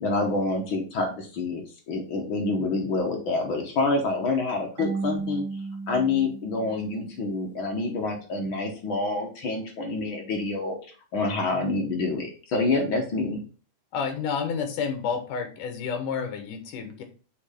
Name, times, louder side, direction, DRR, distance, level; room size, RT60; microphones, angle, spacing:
voice 1, 0.0-5.4 5.9-10.8 11.1-13.4, left 3 dB, 65° left, 1 dB, 1.3 m, -27 dB
Marimba xylophone / Wood, 4.8-7.5, right 4 dB, 65° right, 2.4 m, -35 dB
voice 2, 13.9-17.0, left 6 dB, 80° left, 7 dB, 2.7 m, -30 dB
7.1 x 3.2 x 5.0 m, 0.36 s
omnidirectional pair, 3.7 m